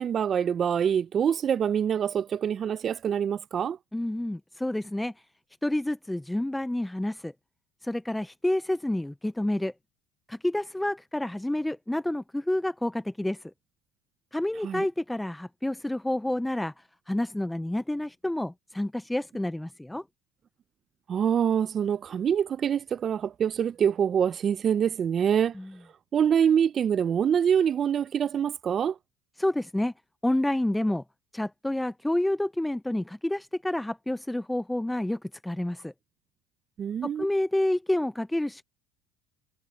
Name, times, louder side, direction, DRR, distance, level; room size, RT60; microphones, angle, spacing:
voice 1, 0.0-3.8 14.6-14.8 21.1-25.5 26.1-29.0 36.8-37.3, right 8 dB, 40° right, 0.8 m, -25 dB
voice 2, 3.9-5.1 5.6-7.3 7.8-9.7 10.3-13.4 14.3-20.0 25.6-25.7 29.4-29.9 30.2-31.0 31.3-35.9 37.0-38.6, left 1 dB, 5° left, 0.6 m, -29 dB
supercardioid pair, 85°, 0 cm